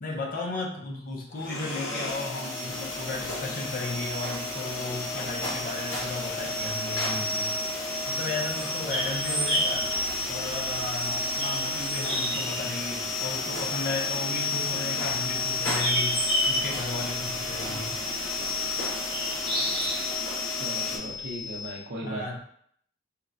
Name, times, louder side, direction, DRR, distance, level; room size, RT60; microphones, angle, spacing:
voice 1, 0.0-7.5 8.1-9.9 10.3-18.0 22.0-22.4, left 3 dB, 45° left, 0 dB, 0.5 m, -35 dB
sound 1, 1.3-21.0, left 2 dB, 65° left, 0.9 m, -32 dB
sound 2, 2.7-20.1, equal, 30° left, 0.9 m, -34 dB
sound 3, 5.0-21.7, left 6 dB, 25° right, 0.9 m, -41 dB
voice 2, 17.7-18.1 20.5-22.4, right 1 dB, 55° right, -1 dB, 0.6 m, -38 dB
4.0 x 2.1 x 2.5 m, 0.67 s
head